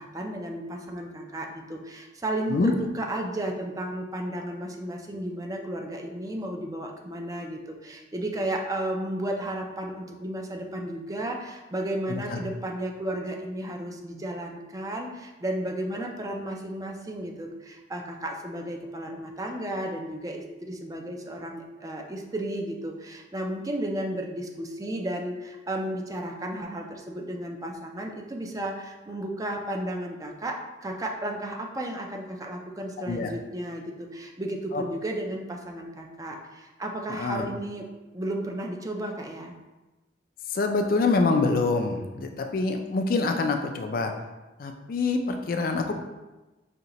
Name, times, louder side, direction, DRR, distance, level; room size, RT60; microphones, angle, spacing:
voice 1, 0.0-37.9 38.1-39.5, right 1 dB, 20° right, 1 dB, 0.4 m, -33 dB
voice 2, 12.1-12.4 33.1-33.3 34.7-34.8 37.1-37.4 40.5-44.1 44.6-45.9, left 3 dB, 50° left, 5 dB, 0.4 m, -25 dB
5.1 x 2.8 x 2.9 m, 1.1 s
head